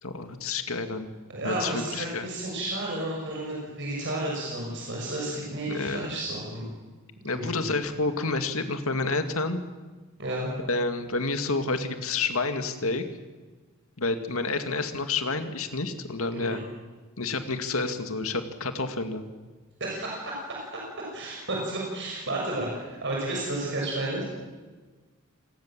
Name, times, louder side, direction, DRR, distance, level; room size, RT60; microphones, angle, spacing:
voice 1, 0.0-1.1 1.4-2.3 5.7-6.1 7.2-9.6 10.7-13.0 14.0-16.6 17.2-19.3, left 3 dB, 70° left, 8 dB, 2.3 m, -29 dB
voice 2, 1.3-6.7 7.3-7.7 10.2-10.5 16.3-16.6 19.8-20.7 21.1-24.2, right 1 dB, 55° right, -2 dB, 6.7 m, -32 dB
27.5 x 20.0 x 7.6 m, 1.3 s
head